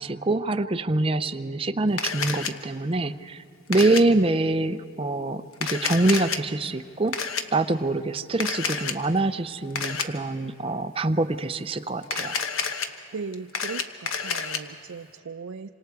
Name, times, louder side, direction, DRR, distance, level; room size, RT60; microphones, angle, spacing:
voice 1, 0.0-3.4 3.7-12.4, right 2 dB, 25° right, 9 dB, 0.5 m, -25 dB
Camera, 2.0-2.5 3.7-4.0 5.5-6.4 7.1-7.4 8.4-9.0 9.7-10.1 12.0-12.9 13.3-14.6, left 6 dB, 80° left, 1.1 m, -29 dB
voice 2, 13.1-15.7, right 4 dB, 80° right, 6 dB, 0.5 m, -37 dB
26.5 x 25.5 x 4.7 m, 2.7 s
head